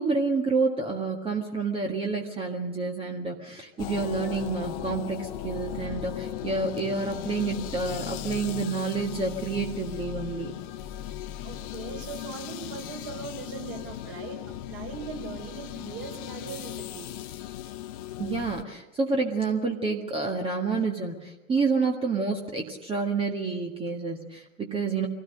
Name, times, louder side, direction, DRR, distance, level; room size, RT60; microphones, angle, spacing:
voice 1, 0.0-10.6 18.2-25.1, right 4 dB, 15° right, 2 dB, 1.8 m, -29 dB
sound 1, 3.8-18.6, left 13 dB, 35° left, 1.0 m, -37 dB
voice 2, 11.4-17.2, right 6 dB, 35° right, 3 dB, 4.9 m, -40 dB
25.0 x 17.5 x 6.6 m, 1.0 s
figure-of-eight pair, 100°, 38 cm